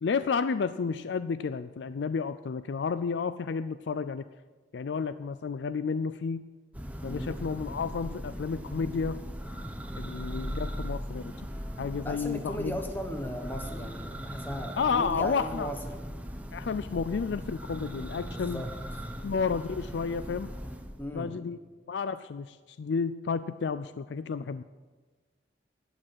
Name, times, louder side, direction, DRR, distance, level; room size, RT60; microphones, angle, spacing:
voice 1, 0.0-4.2 4.7-6.4 7.0-9.2 9.9-11.3 11.8-12.8 14.8-15.7 16.5-18.6 19.2-20.5 21.1-21.6 21.9-24.6, left 5 dB, 90° left, 13 dB, 0.4 m, -31 dB
Church bell, 6.7-21.0, equal, 10° right, 0.8 m, -39 dB
voice 2, 7.0-7.4 12.0-16.0 18.3-18.7 21.0-21.4, equal, 10° left, 5 dB, 1.3 m, -37 dB
12.0 x 8.8 x 7.9 m, 1.4 s
head